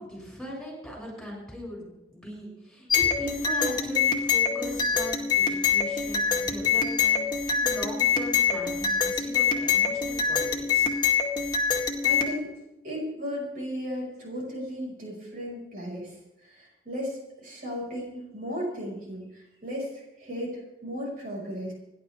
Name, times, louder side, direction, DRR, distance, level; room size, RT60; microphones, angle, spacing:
voice 1, 0.0-10.9, equal, 5° left, -4 dB, 7.1 m, -39 dB
sound 1, 2.9-12.3, left 6 dB, 25° left, 1.9 m, -25 dB
voice 2, 12.0-12.5 12.8-21.7, equal, 50° right, -3 dB, 5.8 m, -35 dB
30.0 x 11.0 x 3.6 m, 0.94 s
head